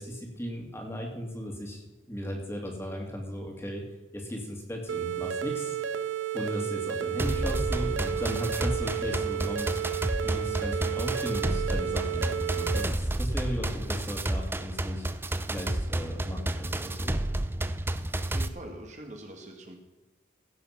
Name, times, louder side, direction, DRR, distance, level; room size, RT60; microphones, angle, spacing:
voice 1, 0.0-3.8 4.1-5.8 6.3-9.8 10.2-15.1 15.4-17.2, equal, 15° left, 1 dB, 2.3 m, -36 dB
sound 1, 4.9-12.9, right 9 dB, 90° right, 0.6 m, -32 dB
sound 2, 7.2-18.5, right 1 dB, 10° right, 0.5 m, -31 dB
voice 2, 18.3-19.8, right 1 dB, 40° right, 3 dB, 1.6 m, -43 dB
16.5 x 7.0 x 5.9 m, 1.1 s
head